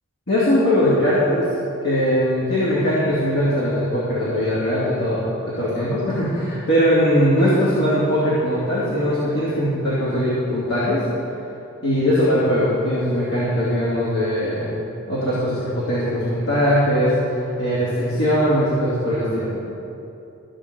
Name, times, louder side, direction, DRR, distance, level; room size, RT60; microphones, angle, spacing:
voice 1, 0.3-1.4 1.8-11.0 11.8-14.7 15.1-19.6, equal, 60° left, -10 dB, 2.6 m, -20 dB
14.0 x 5.1 x 7.6 m, 2.9 s
head